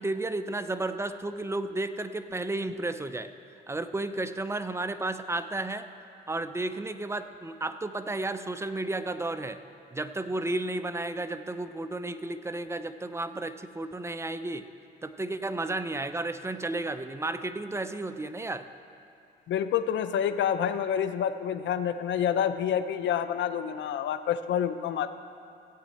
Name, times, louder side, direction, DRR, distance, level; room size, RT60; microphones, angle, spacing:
voice 1, 0.0-3.3 3.7-5.9 6.3-9.6 9.9-14.6 15.0-18.7, right 2 dB, 15° right, 10 dB, 0.5 m, -33 dB
voice 2, 19.5-25.1, left 9 dB, 70° left, 11 dB, 0.6 m, -28 dB
15.5 x 8.5 x 4.2 m, 2.5 s
cardioid pair, 90°, 20 cm